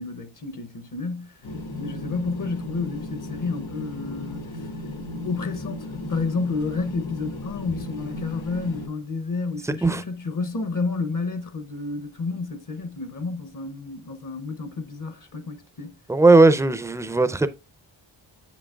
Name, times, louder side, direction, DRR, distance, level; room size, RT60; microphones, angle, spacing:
voice 1, 0.0-1.4 1.8-4.7 5.2-16.0, left 3 dB, 40° left, 0.7 m, -30 dB
sound 1, 1.4-8.9, left 1 dB, 70° left, 1.7 m, -35 dB
voice 2, 16.1-17.5, right 3 dB, 5° right, 0.4 m, -17 dB
7.5 x 6.2 x 2.3 m
wide cardioid pair, 90°, 47 cm